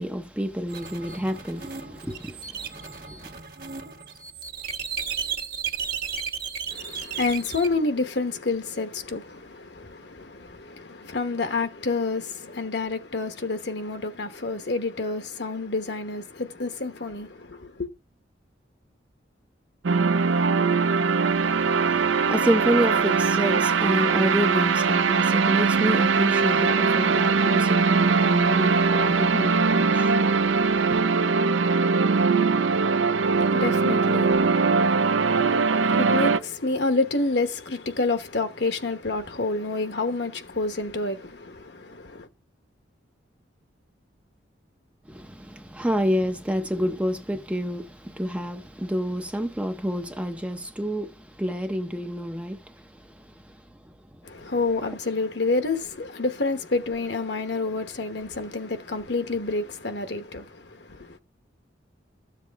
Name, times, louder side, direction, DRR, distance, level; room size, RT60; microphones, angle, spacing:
voice 1, 0.0-3.4 21.2-31.0 45.1-53.6 53.8-53.9, equal, 5° right, 0.6 m, -29 dB
sound 1, 0.7-7.7, right 6 dB, 50° right, 1.4 m, -34 dB
voice 2, 6.7-17.9 33.2-42.3 54.2-61.2, left 3 dB, 65° left, 1.1 m, -29 dB
sound 2, 19.8-36.4, right 4 dB, 80° right, 0.5 m, -21 dB
13.5 x 7.6 x 3.5 m
head